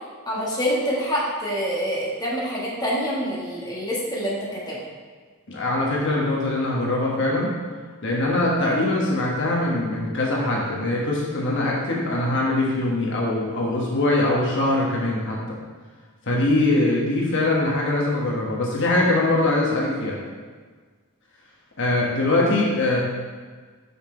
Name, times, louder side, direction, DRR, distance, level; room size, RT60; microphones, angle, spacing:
voice 1, 0.3-4.8, equal, 20° left, -6 dB, 1.4 m, -26 dB
voice 2, 5.5-7.5 8.0-15.4 16.3-20.2 21.8-23.0, left 2 dB, 60° left, -3 dB, 1.3 m, -22 dB
5.7 x 5.6 x 4.4 m, 1.5 s
head